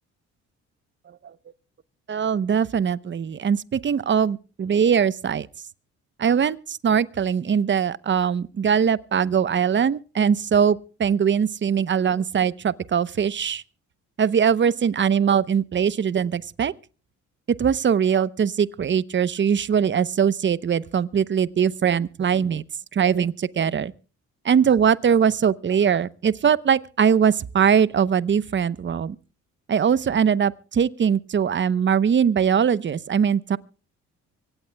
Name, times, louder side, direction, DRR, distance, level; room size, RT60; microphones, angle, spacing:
voice 1, 2.1-5.5 6.2-13.6 14.2-16.7 17.6-22.6 22.9-23.9 24.4-29.2 29.7-33.6, right 7 dB, 40° right, 0.8 m, -21 dB
25.0 x 17.0 x 2.2 m
cardioid pair, 90°, 30 cm